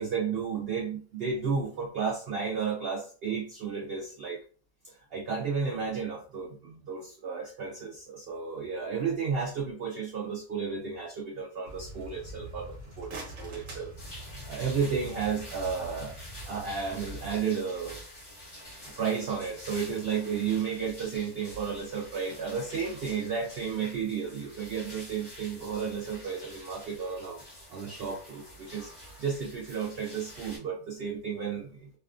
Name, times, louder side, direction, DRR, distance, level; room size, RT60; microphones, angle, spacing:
voice 1, 0.0-4.4 4.8-13.9 14.5-16.2 16.5-18.0 19.0-27.4 27.7-28.9 29.2-31.9, right 6 dB, 85° right, 0 dB, 0.5 m, -33 dB
sound 1, 11.6-17.4, equal, 35° right, 0.9 m, -45 dB
sound 2, 12.8-14.8, right 2 dB, 65° right, 1.2 m, -46 dB
sound 3, 14.0-30.6, equal, 20° left, 0.9 m, -47 dB
2.7 x 2.3 x 2.4 m, 0.41 s
omnidirectional pair, 1.6 m